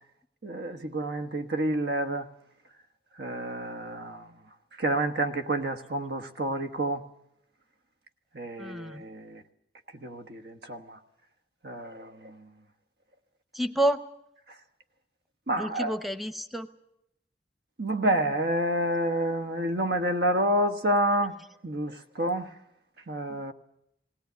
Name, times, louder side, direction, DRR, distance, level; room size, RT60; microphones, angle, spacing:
voice 1, 0.4-2.3 3.2-4.3 4.8-7.0 8.3-9.4 10.0-11.0 11.6-12.5 15.5-16.0 17.8-21.4 21.6-22.5 23.1-23.5, right 1 dB, 65° right, 1.3 m, -29 dB
voice 2, 8.6-9.0 13.6-14.0 15.5-16.7, right 1 dB, ahead, 0.9 m, -29 dB
19.0 x 17.5 x 9.4 m
head